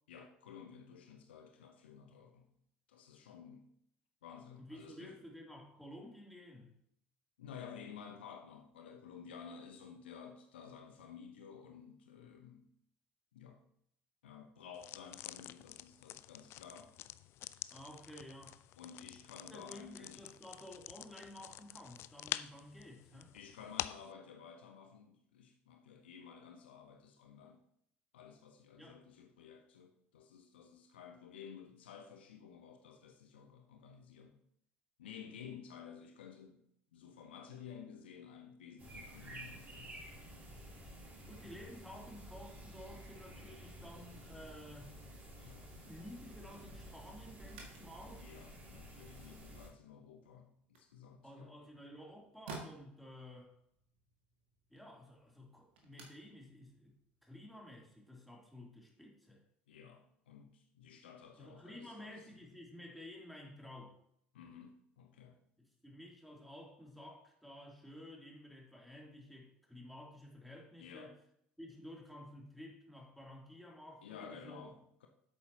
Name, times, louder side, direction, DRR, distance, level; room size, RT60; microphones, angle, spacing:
voice 1, 0.1-2.5 2.9-3.7 4.2-5.2 7.4-12.7 13.3-13.6 14.2-16.9 18.8-20.3 23.3-27.6 28.1-34.4 35.0-36.6 36.9-40.2 45.4-45.7 48.2-51.5 59.7-62.2 64.3-65.4 70.8-71.2 74.0-75.1, left 7 dB, 70° left, 0.8 m, -53 dB
voice 2, 4.6-6.8 17.7-18.6 19.5-23.3 28.8-29.0 41.3-44.9 45.9-48.2 51.2-53.5 54.7-59.4 61.4-64.0 65.6-71.1 71.6-74.7, left 1 dB, ahead, 3.0 m, -53 dB
sound 1, 14.7-24.1, left 14 dB, 45° left, 0.4 m, -47 dB
sound 2, 38.8-49.7, equal, 30° right, 4.1 m, -52 dB
sound 3, 47.4-57.9, right 3 dB, 65° right, 1.9 m, -57 dB
11.0 x 8.2 x 2.9 m
figure-of-eight pair, 65°, 6 cm